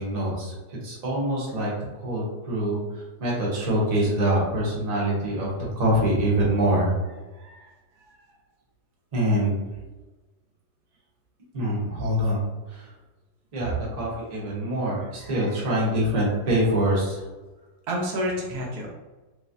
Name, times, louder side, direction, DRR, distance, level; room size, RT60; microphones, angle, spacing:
voice 1, 0.0-6.9 9.1-9.6 11.5-12.9 13.5-17.2, right 1 dB, 30° right, -5 dB, 0.8 m, -25 dB
voice 2, 7.3-8.3 15.2-15.6 17.9-18.9, equal, 70° right, -2 dB, 1.2 m, -32 dB
3.2 x 3.1 x 2.5 m, 1.2 s
omnidirectional pair, 1.8 m